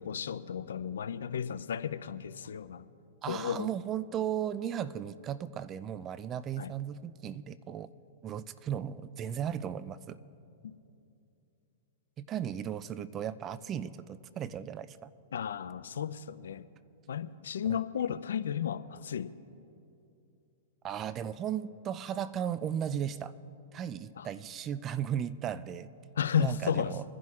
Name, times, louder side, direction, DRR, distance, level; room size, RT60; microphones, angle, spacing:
voice 1, 0.0-2.8 3.3-3.7 6.6-6.7 15.3-16.7 17.1-19.3 24.2-24.3 26.2-26.9, left 8 dB, 80° left, 14 dB, 0.4 m, -33 dB
voice 2, 3.2-7.9 8.2-10.2 12.2-15.1 17.7-17.8 20.8-23.3 23.7-25.9 26.4-27.0, right 9 dB, 30° right, 15 dB, 0.4 m, -36 dB
25.5 x 11.0 x 2.4 m, 2.7 s
hypercardioid pair, 120°, 0 cm